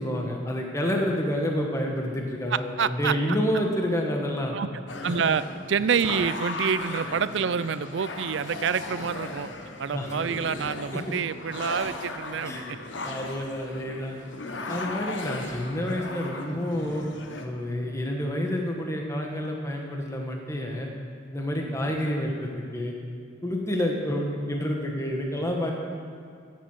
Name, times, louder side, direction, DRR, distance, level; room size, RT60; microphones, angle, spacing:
voice 1, 0.0-4.6 9.9-10.1 10.9-11.1 12.4-12.6 13.0-14.2 14.7-17.1 17.4-20.9 21.3-22.9 23.4-25.7, equal, 15° left, 1 dB, 1.3 m, -29 dB
voice 2, 2.5-3.1 4.5-4.7 5.0-5.4 5.7-9.5 9.8-12.8 21.7-22.0, right 6 dB, 75° right, 15 dB, 0.4 m, -27 dB
sound 1, 4.9-17.4, left 2 dB, 75° left, 1.1 m, -37 dB
14.0 x 7.8 x 7.3 m, 2.2 s
head